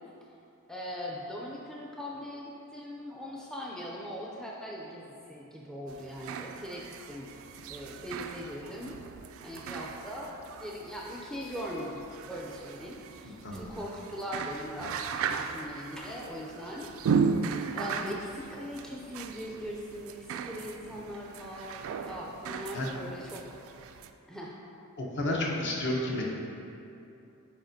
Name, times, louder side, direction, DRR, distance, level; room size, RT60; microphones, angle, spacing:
voice 1, 0.7-7.3 7.7-9.0 9.4-16.9 17.1-17.2 17.7-23.4 23.7-23.9 24.3-24.5, equal, 5° left, -3 dB, 0.4 m, -40 dB
sound 1, 5.9-24.1, right 5 dB, 65° right, 0.3 m, -36 dB
voice 2, 13.2-13.7 22.7-23.0 25.0-26.2, left 1 dB, 55° left, -2 dB, 0.9 m, -31 dB
9.0 x 4.2 x 2.7 m, 2.8 s
head